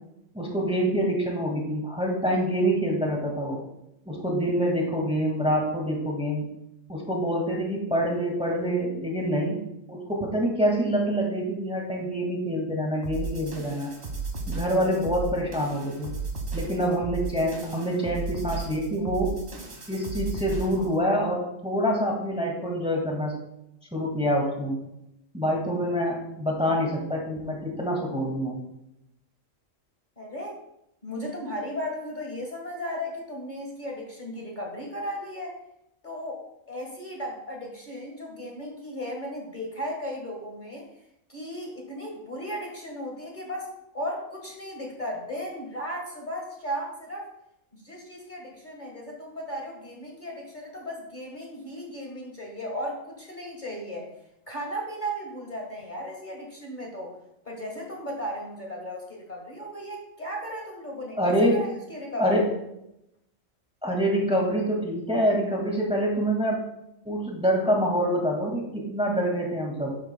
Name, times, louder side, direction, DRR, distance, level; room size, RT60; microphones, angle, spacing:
voice 1, 0.3-3.6 4.1-6.5 6.9-9.6 9.9-13.9 14.5-16.1 16.5-19.4 19.9-23.3 23.9-24.8 25.3-28.6 61.2-61.6 62.2-62.5 63.8-66.7 67.1-69.9, equal, 5° right, -1 dB, 1.9 m, -26 dB
sound 1, 13.0-21.0, right 4 dB, 55° right, 1.7 m, -35 dB
voice 2, 30.2-30.6 31.0-35.6 36.0-47.3 47.7-54.1 54.5-57.2 57.5-62.4, equal, 35° left, -1 dB, 1.8 m, -36 dB
11.5 x 8.9 x 2.2 m, 0.82 s
omnidirectional pair, 1.4 m